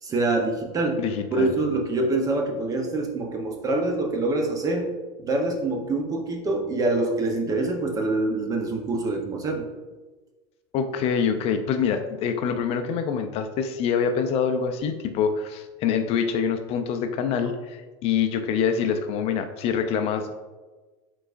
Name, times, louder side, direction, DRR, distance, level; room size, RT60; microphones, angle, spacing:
voice 1, 0.0-1.0 1.3-4.9 5.2-9.7, right 2 dB, 25° right, 2 dB, 0.8 m, -25 dB
voice 2, 1.0-1.5 10.7-20.3, left 7 dB, 45° left, 7 dB, 0.4 m, -25 dB
4.6 x 3.8 x 2.5 m, 1.3 s
supercardioid pair, 120°, 15 cm